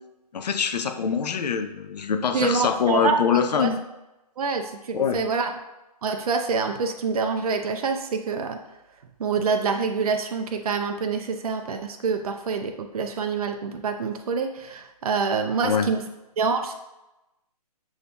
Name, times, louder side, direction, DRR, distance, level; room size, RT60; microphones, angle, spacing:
voice 1, 0.3-3.8 4.9-5.2 15.6-15.9, left 7 dB, 80° left, 8 dB, 0.5 m, -24 dB
voice 2, 2.3-3.7 4.4-5.5 6.0-8.6 9.2-16.0 16.4-16.7, right 5 dB, 65° right, 5 dB, 0.5 m, -26 dB
7.0 x 2.7 x 2.2 m, 0.97 s
hypercardioid pair, 155°, 21 cm